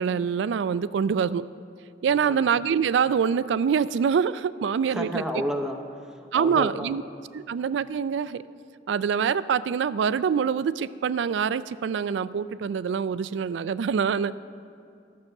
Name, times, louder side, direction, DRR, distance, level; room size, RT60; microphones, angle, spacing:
voice 1, 0.0-1.4 2.0-5.2 6.3-7.0 7.3-8.4 8.9-14.3, right 7 dB, 80° right, 17 dB, 0.3 m, -25 dB
voice 2, 2.1-2.5 4.9-5.8 6.3-6.9 7.3-7.5, equal, 5° right, 3 dB, 0.7 m, -31 dB
12.0 x 6.6 x 7.1 m, 2.4 s
head